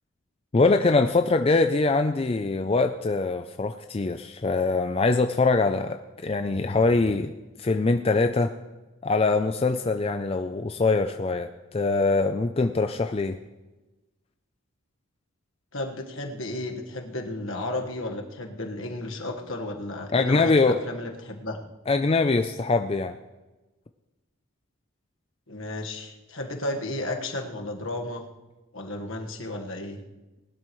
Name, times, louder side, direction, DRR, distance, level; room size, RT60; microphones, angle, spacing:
voice 1, 0.5-7.3 7.6-8.5 9.0-13.4 20.1-20.8 21.9-23.1, left 3 dB, 25° left, 7 dB, 0.4 m, -23 dB
voice 2, 15.7-21.6 25.5-28.2 28.7-30.0, left 2 dB, 65° left, 3 dB, 1.5 m, -33 dB
19.5 x 12.0 x 3.1 m, 1.1 s
head